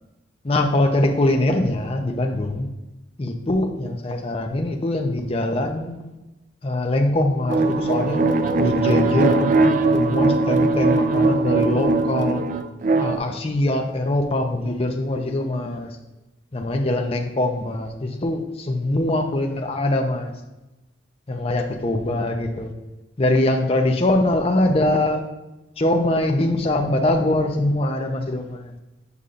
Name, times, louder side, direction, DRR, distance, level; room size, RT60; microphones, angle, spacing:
voice 1, 0.4-2.7 3.2-6.1 6.6-8.3 8.6-9.5 9.9-12.4 13.0-15.9 16.5-20.3 21.3-22.7 23.2-25.2 25.8-28.7, left 1 dB, 30° left, 3 dB, 0.6 m, -22 dB
sound 1, 7.5-13.2, right 3 dB, 45° right, 0.4 m, -20 dB
8.3 x 5.4 x 2.5 m, 1.0 s
head